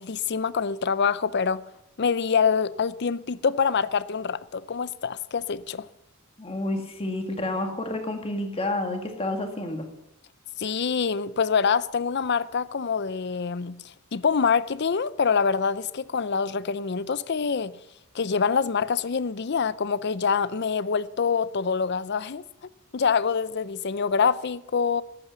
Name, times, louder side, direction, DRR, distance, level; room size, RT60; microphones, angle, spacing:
voice 1, 0.0-1.6 2.0-5.9 10.6-13.8 14.1-17.7 18.1-22.4 22.9-25.0, left 6 dB, 50° left, 0.5 m, -25 dB
voice 2, 6.4-9.9, left 2 dB, 25° left, 2.1 m, -29 dB
18.0 x 8.8 x 6.9 m
head